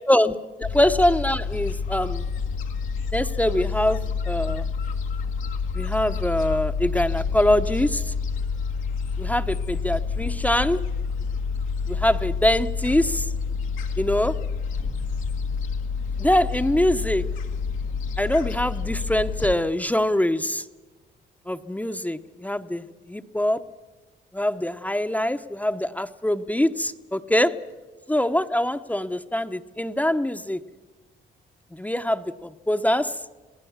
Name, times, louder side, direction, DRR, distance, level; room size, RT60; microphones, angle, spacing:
voice 1, 0.1-2.2 3.1-4.7 5.7-8.1 9.2-10.8 11.9-13.3 14.0-14.4 16.2-17.2 18.2-20.6 21.5-23.6 24.3-27.5 28.1-30.6 31.7-33.1, left 1 dB, 5° left, 9 dB, 0.8 m, -23 dB
Gull seagull, 0.6-19.6, left 5 dB, 90° left, 1.9 m, -28 dB
27.0 x 18.5 x 7.2 m, 1.2 s
cardioid pair, 90°, 20 cm